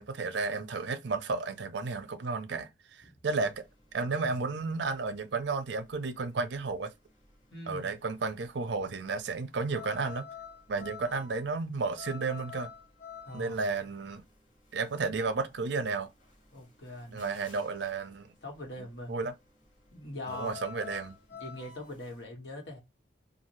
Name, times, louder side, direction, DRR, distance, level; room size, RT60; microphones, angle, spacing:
voice 1, 0.0-3.7 3.9-6.9 7.7-10.3 10.7-12.7 13.3-14.2 14.7-16.1 17.1-18.3 19.1-19.3 20.3-21.2, right 4 dB, 65° right, 0.5 m, -33 dB
sound 1, 3.3-22.2, left 7 dB, 45° left, 1.4 m, -50 dB
voice 2, 7.5-7.9 13.2-13.5 16.5-17.3 18.4-19.1 19.9-20.5 21.3-22.8, left 1 dB, 65° left, 1.3 m, -42 dB
2.7 x 2.5 x 3.0 m
head